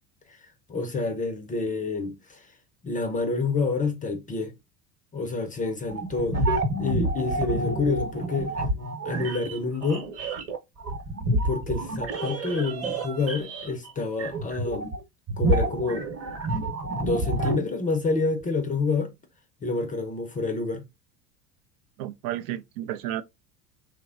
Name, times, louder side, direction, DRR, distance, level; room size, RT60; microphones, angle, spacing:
voice 1, 0.7-2.5 2.8-4.5 5.1-8.5 9.0-10.1 11.4-14.9 15.4-16.1 17.0-19.1 19.6-20.8, left 3 dB, 15° left, 0.5 m, -28 dB
sound 1, 5.9-13.9 14.2-15.0 15.3-17.6, right 1 dB, 30° right, 1.0 m, -28 dB
voice 2, 22.0-23.2, right 13 dB, 55° right, 0.5 m, -32 dB
3.1 x 2.1 x 2.4 m
hypercardioid pair, 80°, 49 cm